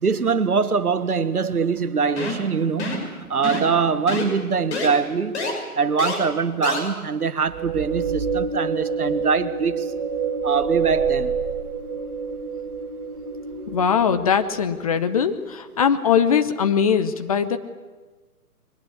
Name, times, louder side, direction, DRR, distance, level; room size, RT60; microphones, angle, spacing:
voice 1, 0.0-2.9 3.3-5.4 5.7-9.9 10.4-11.4, right 5 dB, 75° right, 12 dB, 1.6 m, -23 dB
sound 1, 2.2-2.5 2.8-3.1 3.4-3.7 4.1-4.2 4.7-4.9 5.3-5.5 6.0-6.1 6.6-6.8, left 2 dB, 45° left, 6.2 m, -27 dB
sound 2, 7.5-14.8, right 5 dB, 30° right, 5.8 m, -27 dB
voice 2, 13.7-17.6, left 7 dB, 25° left, 10 dB, 0.8 m, -21 dB
22.0 x 20.0 x 8.3 m, 1.3 s
figure-of-eight pair, 140°, 45 cm